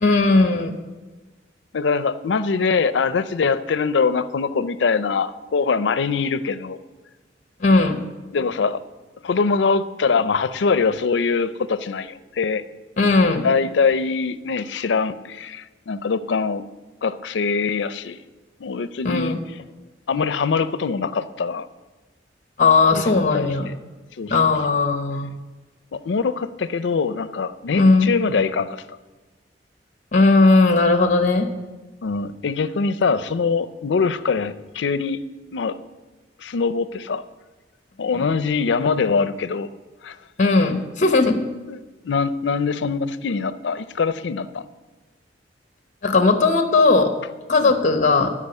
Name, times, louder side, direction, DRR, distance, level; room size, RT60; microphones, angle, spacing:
voice 1, 0.0-0.7 7.6-8.0 13.0-13.5 19.0-19.4 20.2-20.3 22.6-23.7 24.3-25.3 27.7-28.1 30.1-31.5 32.2-32.3 38.2-39.0 40.4-41.4 42.6-42.8 46.0-47.1 47.5-48.3, left 3 dB, 45° left, 7 dB, 0.8 m, -18 dB
voice 2, 1.7-6.8 8.3-8.8 9.2-12.6 13.4-16.6 17.0-18.2 18.6-19.3 20.1-21.7 22.9-23.7 24.2-24.5 25.9-28.8 32.0-35.2 35.5-35.7 36.4-37.2 38.0-39.7 40.0-40.2 41.7-41.8 42.0-44.7 47.6-47.7, left 5 dB, 85° left, 14 dB, 0.5 m, -23 dB
12.5 x 5.1 x 6.6 m, 1.2 s
head